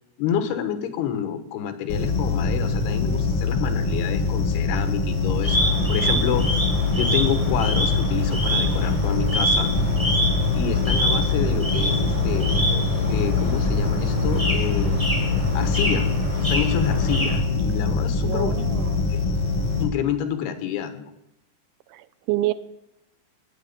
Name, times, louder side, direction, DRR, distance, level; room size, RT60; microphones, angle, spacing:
voice 1, 0.2-6.5 6.9-9.7 10.5-12.7 13.1-15.0 15.5-16.1 16.4-18.5 19.1-19.2 19.8-21.1, left 8 dB, 80° left, 9 dB, 3.3 m, -28 dB
sound 1, 1.9-19.8, left 3 dB, 30° left, 2.7 m, -24 dB
sound 2, 5.4-17.4, left 1 dB, 10° right, 4.0 m, -25 dB
voice 2, 18.2-19.1 21.9-22.5, right 16 dB, 85° right, 13 dB, 2.7 m, -28 dB
18.0 x 8.7 x 6.7 m, 0.87 s
omnidirectional pair, 4.6 m